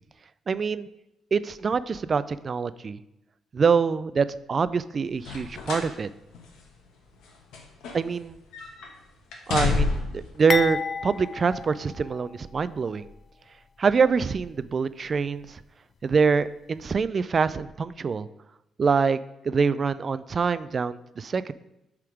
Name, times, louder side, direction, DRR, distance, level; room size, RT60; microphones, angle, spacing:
voice 1, 0.5-0.9 1.3-3.0 3.5-6.1 7.9-8.4 9.5-13.0 13.8-15.6 16.0-18.3 18.8-19.2 19.4-21.5, right 5 dB, 40° right, 15 dB, 0.3 m, -25 dB
sound 1, 5.2-6.0 6.3-6.5 7.2-8.3 8.5-8.9 9.3-10.2 11.1-11.2, left 4 dB, 85° left, 1.1 m, -28 dB
sound 2, 10.5-12.7 13.0-13.2 14.0-14.2, left 5 dB, 40° left, 0.4 m, -31 dB
7.6 x 3.6 x 4.9 m, 0.88 s
cardioid pair, 90°, 0 cm